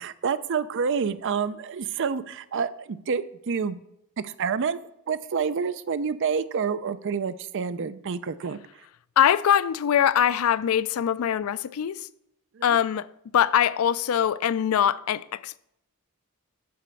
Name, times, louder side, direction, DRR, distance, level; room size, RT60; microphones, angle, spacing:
voice 1, 0.0-3.8 4.2-4.8 5.1-8.6 12.5-12.8, right 6 dB, 55° right, 0.5 m, -28 dB
voice 2, 9.2-12.0 12.6-13.1 13.3-15.6, left 9 dB, 70° left, 0.3 m, -22 dB
7.6 x 5.0 x 6.9 m
head